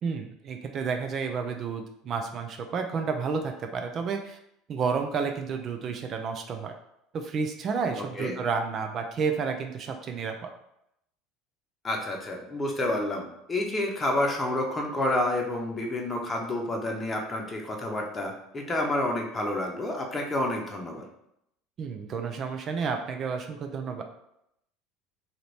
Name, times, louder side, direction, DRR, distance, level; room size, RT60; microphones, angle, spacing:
voice 1, 0.0-4.4 4.7-6.7 7.1-10.5 21.8-24.0, right 5 dB, 45° right, 5 dB, 0.5 m, -31 dB
voice 2, 8.0-8.4 11.8-21.1, left 1 dB, 20° left, 0 dB, 0.8 m, -29 dB
2.8 x 2.5 x 3.3 m, 0.78 s
hypercardioid pair, 75°, 0 cm